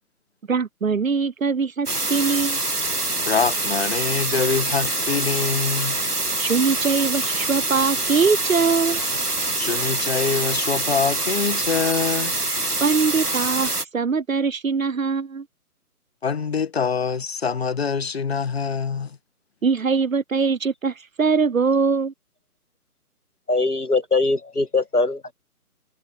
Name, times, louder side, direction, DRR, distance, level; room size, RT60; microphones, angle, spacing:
voice 1, 0.5-2.6 6.4-9.0 12.8-15.5 19.6-22.1, right 5 dB, 60° right, 0.9 m, -22 dB
sound 1, 1.9-13.8, right 2 dB, 90° right, 2.1 m, -25 dB
voice 2, 3.2-6.0 9.6-12.3 16.2-19.2, left 5 dB, 45° left, 1.7 m, -24 dB
voice 3, 23.5-25.3, left 3 dB, 80° left, 2.4 m, -21 dB
figure-of-eight pair, 145°, 45 cm